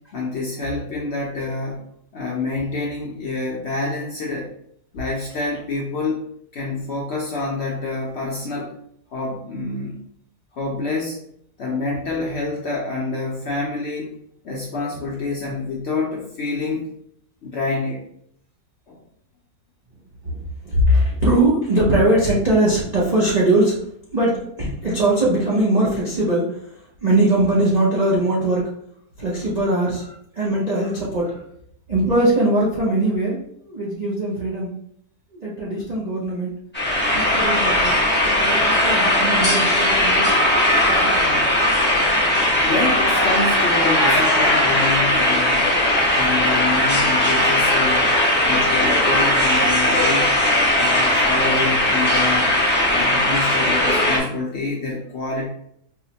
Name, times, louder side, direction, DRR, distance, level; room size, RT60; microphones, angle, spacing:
voice 1, 0.1-1.9 2.1-4.5 4.9-8.7 9.1-9.9 10.5-11.2 11.6-14.2 14.4-16.9 17.4-18.0 18.9-19.0 42.6-45.9 46.1-50.4 50.8-52.5 52.9-55.5, left 3 dB, 65° left, -3 dB, 0.6 m, -27 dB
voice 2, 20.6-23.9 24.1-28.8 29.2-30.1 30.3-31.4 31.9-34.7 35.3-36.5 37.1-40.3 40.9-41.4, right 1 dB, 75° right, -6 dB, 0.3 m, -21 dB
sound 1, 36.7-54.2, left 1 dB, 15° left, 0.4 m, -18 dB
4.6 x 2.1 x 2.8 m, 0.69 s
omnidirectional pair, 1.7 m